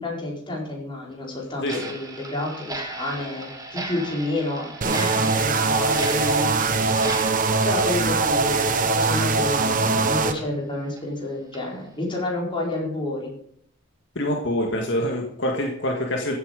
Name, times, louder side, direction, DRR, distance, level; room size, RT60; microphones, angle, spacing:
voice 1, 0.0-6.8 7.6-13.3, left 2 dB, 25° left, -2 dB, 4.6 m, -30 dB
Clock, 1.6-8.9 9.2-9.3 9.8-9.9 10.4-10.5 11.0-11.1 11.5-11.6 12.1-12.3, right 2 dB, 20° right, 1.8 m, -36 dB
sound 1, 4.8-10.3, right 3 dB, 45° right, 1.1 m, -22 dB
voice 2, 14.2-16.4, left 1 dB, 65° left, 1 dB, 1.9 m, -25 dB
15.0 x 8.5 x 5.3 m, 0.67 s
head